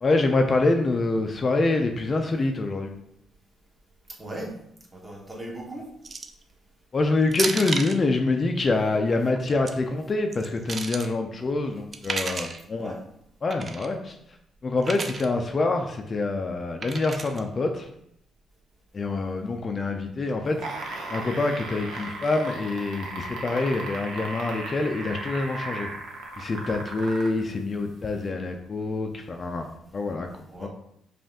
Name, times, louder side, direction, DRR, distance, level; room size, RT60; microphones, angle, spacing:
voice 1, 0.0-3.0 6.9-12.9 13.4-14.2 14.6-17.9 18.9-25.9 26.4-30.3 30.6-30.7, left 3 dB, 35° left, 4 dB, 0.4 m, -26 dB
voice 2, 4.2-4.6 4.9-5.9 12.8-13.0 30.5-30.7, right 1 dB, 20° right, -1 dB, 1.1 m, -38 dB
sound 1, 6.0-6.4 7.3-8.0 9.3-9.7 10.3-11.1 11.9-12.6 13.5-13.9 14.8-15.3 16.8-17.4, right 4 dB, 40° right, 0.4 m, -32 dB
sound 2, 20.5-27.4 28.2-28.3, right 2 dB, 80° right, 0.8 m, -36 dB
5.1 x 2.5 x 3.6 m, 0.74 s
cardioid pair, 90°, 0 cm